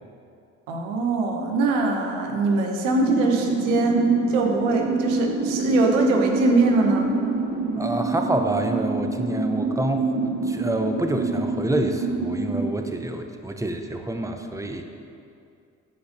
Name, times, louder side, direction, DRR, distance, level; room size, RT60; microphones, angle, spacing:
voice 1, 0.7-7.1, right 3 dB, 90° right, 2 dB, 1.2 m, -22 dB
sound 1, 3.0-12.7, right 3 dB, 45° right, 1.8 m, -26 dB
voice 2, 7.8-14.9, right 1 dB, 10° right, 5 dB, 1.1 m, -27 dB
13.5 x 5.4 x 6.7 m, 2.5 s
hypercardioid pair, 50°, 36 cm